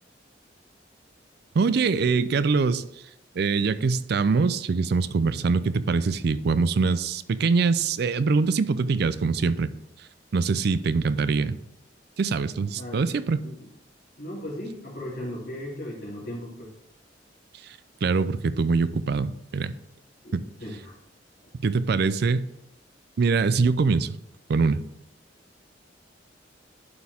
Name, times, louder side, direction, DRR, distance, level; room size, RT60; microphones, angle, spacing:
voice 1, 1.5-2.8 3.4-9.7 10.3-11.6 12.2-13.4 18.0-19.7 20.3-20.4 21.6-22.5 23.2-24.2 24.5-24.8, right 4 dB, 60° right, 15 dB, 0.4 m, -23 dB
voice 2, 14.2-16.7 20.2-20.4 20.6-20.9, left 1 dB, 60° left, -7 dB, 3.2 m, -36 dB
11.5 x 4.4 x 3.5 m, 0.82 s
head